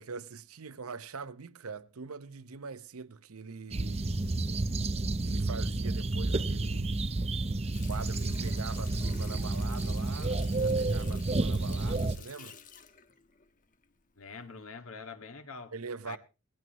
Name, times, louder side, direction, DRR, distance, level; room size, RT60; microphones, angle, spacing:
voice 1, 0.0-4.2 5.2-7.1 7.8-12.6 15.7-16.2, right 5 dB, 90° right, 0.8 m, -43 dB
sound 1, 3.7-12.2, right 2 dB, 30° right, 0.6 m, -30 dB
Water tap faucet, 7.7-14.1 14.5-14.7, left 7 dB, 40° left, 1.2 m, -51 dB
voice 2, 14.2-15.7 16.1-16.2, left 4 dB, 80° left, 1.9 m, -44 dB
19.0 x 15.5 x 3.0 m
head